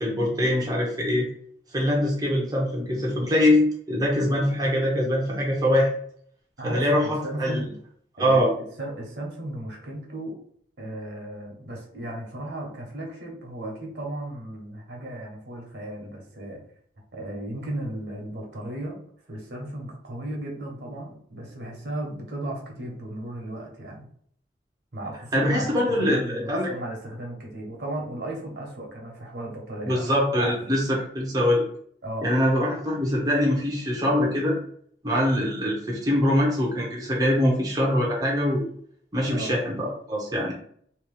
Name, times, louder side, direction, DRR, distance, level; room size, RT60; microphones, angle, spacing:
voice 1, 0.0-1.3 1.7-5.9 6.6-7.6 8.2-8.5 25.3-26.7 29.9-31.7 32.2-34.6 35.0-38.7 39.1-40.5, left 1 dB, 20° right, -3 dB, 0.7 m, -23 dB
voice 2, 6.6-7.7 8.2-10.4 10.8-16.6 17.1-19.0 19.3-24.1 24.9-30.6 32.0-32.3 39.3-39.5, right 1 dB, 65° right, 0 dB, 1.1 m, -35 dB
3.0 x 2.9 x 3.3 m, 0.62 s
head